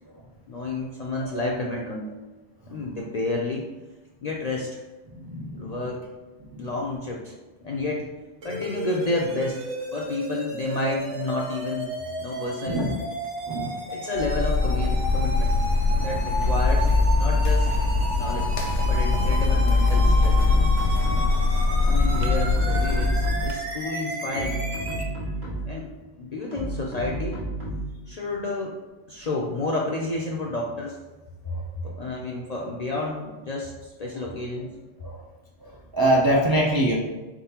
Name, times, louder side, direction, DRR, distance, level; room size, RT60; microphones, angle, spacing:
voice 1, 0.5-2.2 2.7-3.7 4.2-4.8 5.5-6.1 6.6-7.3 7.6-8.1 8.4-12.9 13.9-15.6 15.9-17.7 18.2-18.5 18.9-20.4 21.9-24.6 25.7-25.9 26.2-27.4 28.1-28.8 29.1-31.0 31.5-31.6 31.8-34.7, left 2 dB, 50° left, -2 dB, 0.5 m, -30 dB
voice 2, 5.1-5.7 6.5-6.7 12.7-12.9 13.5-13.8 35.9-36.9, right 1 dB, 35° right, -3 dB, 0.3 m, -23 dB
sound 1, 8.4-25.0, right 1 dB, 85° right, 1.4 m, -33 dB
sound 2, 14.2-23.5, left 3 dB, 75° left, 1.0 m, -22 dB
Daddy D Destorted Drum Loop, 20.0-21.5 21.9-23.7 24.2-25.8 26.5-28.0, right 1 dB, 60° right, 1.5 m, -32 dB
4.0 x 3.7 x 2.8 m, 1.2 s
omnidirectional pair, 1.2 m